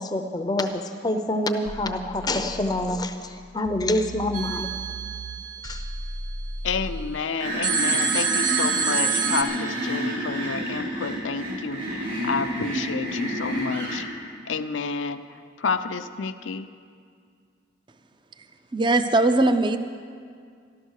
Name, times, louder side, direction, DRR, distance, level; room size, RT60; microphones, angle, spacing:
voice 1, 0.0-4.7 5.6-5.8, left 1 dB, 20° left, 7 dB, 0.6 m, -26 dB
sound 1, 1.7-3.1 3.6-7.1, right 1 dB, 70° right, 0.6 m, -36 dB
sound 2, 4.3-6.6 7.6-9.4, right 6 dB, 40° right, 1.2 m, -27 dB
voice 2, 6.6-14.0 14.5-15.2 15.6-16.6, left 4 dB, 85° left, 9 dB, 0.6 m, -29 dB
sound 3, 7.4-14.0, equal, 85° right, 4.4 m, -29 dB
voice 3, 18.7-19.8, right 2 dB, 25° right, 9 dB, 0.5 m, -20 dB
13.5 x 12.5 x 6.5 m, 2.2 s
head